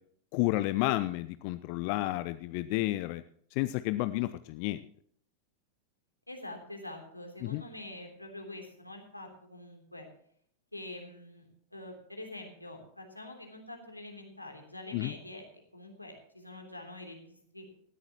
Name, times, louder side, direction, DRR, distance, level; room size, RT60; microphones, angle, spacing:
voice 1, 0.3-3.2 3.5-4.8 7.4-7.6 14.9-15.1, left 17 dB, 45° left, 14 dB, 0.5 m, -31 dB
voice 2, 6.3-10.1 10.7-17.7, left 1 dB, 85° left, 2 dB, 3.3 m, -45 dB
18.5 x 13.5 x 3.0 m, 0.63 s
figure-of-eight pair, 90°, 0 cm